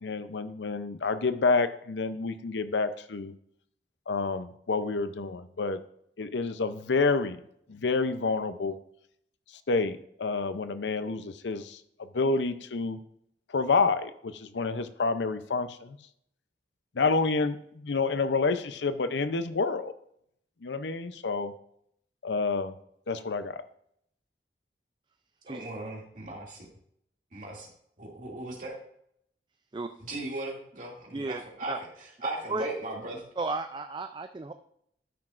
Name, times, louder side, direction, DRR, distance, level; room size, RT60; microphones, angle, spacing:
voice 1, 0.0-3.3 4.1-5.8 6.2-7.4 7.7-8.8 9.7-11.8 12.1-13.0 13.5-16.0 17.0-19.9 20.6-21.5 22.2-22.7 23.1-23.6, left 4 dB, 90° left, 11 dB, 0.6 m, -28 dB
voice 2, 25.5-26.7 27.3-27.7 28.0-28.8 30.0-31.7 32.2-33.3, right 2 dB, 45° right, -2 dB, 2.5 m, -37 dB
voice 3, 31.1-31.8 32.5-32.6 33.4-34.5, right 3 dB, 25° right, 7 dB, 0.4 m, -34 dB
13.0 x 6.1 x 2.5 m, 0.71 s
head